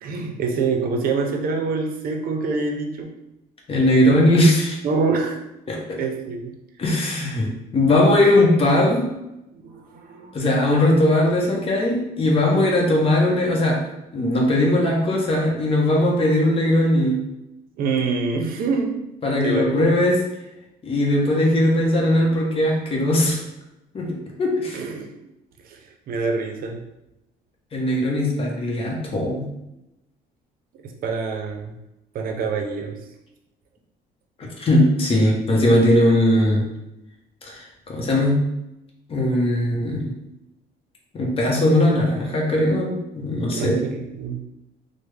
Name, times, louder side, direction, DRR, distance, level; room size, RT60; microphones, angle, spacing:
voice 1, 0.0-3.1 4.8-5.4 6.0-6.5 9.5-10.4 17.8-19.0 19.4-20.2 24.7-25.1 25.7-25.8 26.1-26.8 30.8-31.7 32.1-33.0 43.5-44.4, right 4 dB, 60° right, 3 dB, 0.6 m, -26 dB
voice 2, 3.7-4.8 5.7-6.0 6.8-9.1 10.3-13.8 14.1-17.2 19.2-20.2 20.8-23.4 23.9-24.8 27.7-29.5 34.4-36.6 37.4-38.4 39.1-40.1 41.1-43.8, left 1 dB, 35° left, -1 dB, 0.8 m, -19 dB
3.2 x 2.1 x 3.2 m, 0.90 s
cardioid pair, 110°, 17 cm